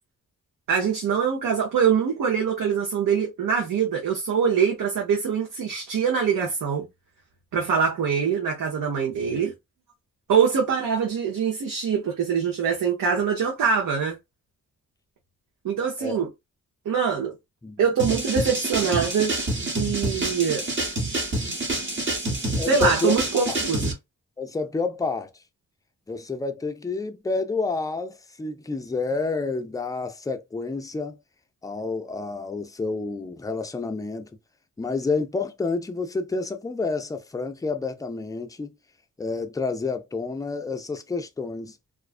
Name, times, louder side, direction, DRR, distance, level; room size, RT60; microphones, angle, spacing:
voice 1, 0.7-6.9 7.5-9.5 10.3-14.2 15.6-16.3 16.9-17.3 17.8-19.3 19.7-20.7 22.7-23.9, right 6 dB, 75° right, 0.7 m, -23 dB
Jungle Break, 18.0-23.9, right 2 dB, 35° right, 0.9 m, -27 dB
voice 2, 22.6-23.1 23.5-23.6 24.4-25.3 26.1-31.2 31.6-34.3 34.8-38.8 39.2-41.8, left 3 dB, 10° left, 0.3 m, -29 dB
2.4 x 2.3 x 2.3 m
wide cardioid pair, 115°, 33 cm